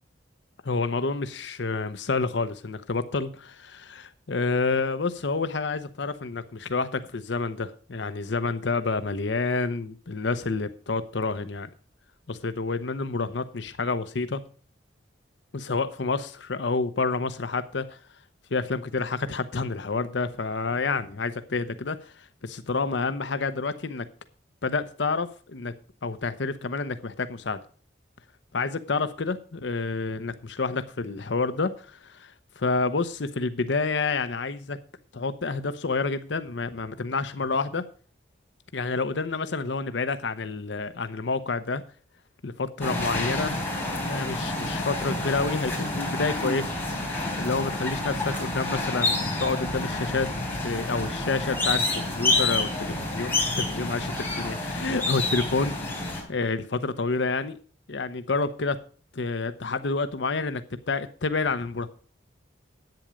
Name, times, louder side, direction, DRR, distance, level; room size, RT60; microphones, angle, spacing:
voice 1, 0.6-11.7 12.3-14.4 15.5-18.0 18.5-24.1 24.6-25.7 26.0-27.6 28.5-34.8 35.1-37.8 38.7-41.8 42.4-43.6 44.0-57.6 57.9-58.8 59.1-61.9, left 3 dB, 70° left, 11 dB, 0.8 m, -29 dB
sound 1, 42.8-56.2, left 2 dB, 10° left, 4.0 m, -28 dB
10.5 x 8.7 x 5.0 m, 0.41 s
head